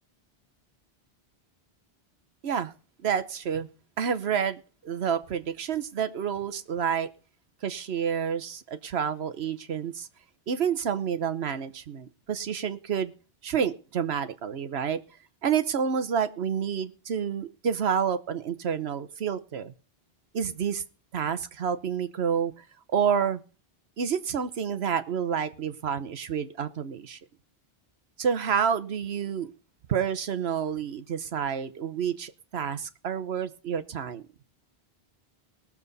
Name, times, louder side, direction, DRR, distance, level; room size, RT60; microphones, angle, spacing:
voice 1, 3.0-3.7 4.0-7.1 7.6-10.1 10.5-13.1 13.4-15.0 15.4-19.7 20.3-20.8 21.1-22.5 22.9-23.4 24.0-27.2 28.2-29.5 29.9-34.2, right 7 dB, 85° right, 10 dB, 1.2 m, -29 dB
19.5 x 7.2 x 4.1 m, 0.36 s
omnidirectional pair, 1.0 m